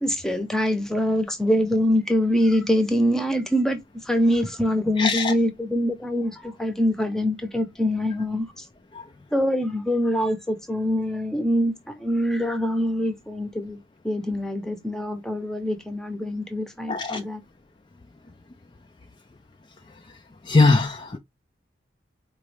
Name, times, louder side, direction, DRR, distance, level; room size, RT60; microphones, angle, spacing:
voice 1, 0.0-8.5 9.3-13.8 14.0-17.4, equal, 5° left, 0.7 m, -24 dB
voice 2, 5.0-5.3 16.9-17.2 20.5-21.2, left 3 dB, 25° left, 0.3 m, -20 dB
4.6 x 3.0 x 3.2 m
head